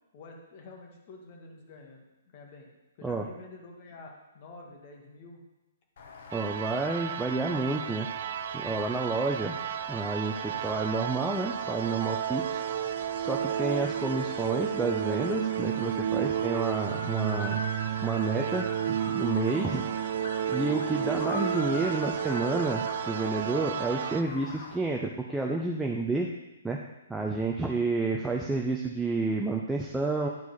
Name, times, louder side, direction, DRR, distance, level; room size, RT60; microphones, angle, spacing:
voice 1, 0.1-2.7 3.0-5.4, left 3 dB, 40° left, 0 dB, 1.8 m, -49 dB
sound 1, 6.0-24.8, left 3 dB, 60° left, 1.2 m, -43 dB
voice 2, 6.3-8.1 8.5-9.6 9.9-12.6 13.2-17.6 18.0-19.8 20.5-26.3 26.6-26.8 27.1-30.3, right 3 dB, 5° right, -1 dB, 0.6 m, -30 dB
sound 2, 6.3-24.2, right 10 dB, 55° right, 0.3 m, -32 dB
10.5 x 4.7 x 4.0 m, 1.0 s
figure-of-eight pair, 130°, 0 cm